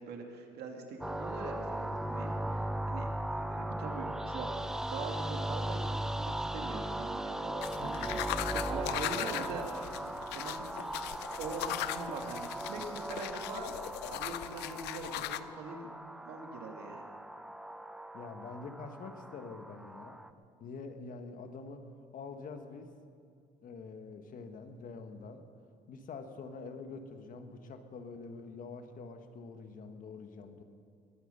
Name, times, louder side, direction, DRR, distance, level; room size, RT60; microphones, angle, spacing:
voice 1, 0.0-8.3 8.5-13.7 14.1-15.9 16.3-17.0, right 4 dB, 75° right, 2 dB, 2.3 m, -43 dB
sound 1, 1.0-20.3, right 1 dB, 5° right, 0.6 m, -38 dB
voice 2, 1.9-2.3 7.7-8.1 18.1-20.2 20.6-21.9 22.1-22.9 23.6-25.4 25.9-30.6, left 4 dB, 55° left, 7 dB, 1.4 m, -46 dB
sound 2, 7.6-15.4, left 14 dB, 85° left, 0.5 m, -39 dB
21.5 x 9.2 x 6.8 m, 2.3 s
cardioid pair, 110°, 17 cm